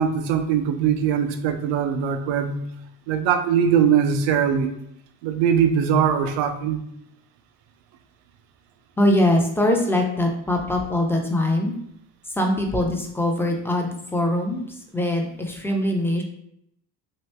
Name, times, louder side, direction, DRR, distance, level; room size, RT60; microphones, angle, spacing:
voice 1, 0.0-2.6 3.1-4.7 5.2-6.8, right 8 dB, 60° right, 8 dB, 0.6 m, -21 dB
voice 2, 9.0-11.7 12.3-16.2, left 1 dB, 5° left, 1 dB, 0.6 m, -22 dB
3.0 x 2.6 x 3.2 m, 0.75 s
supercardioid pair, 75°, 49 cm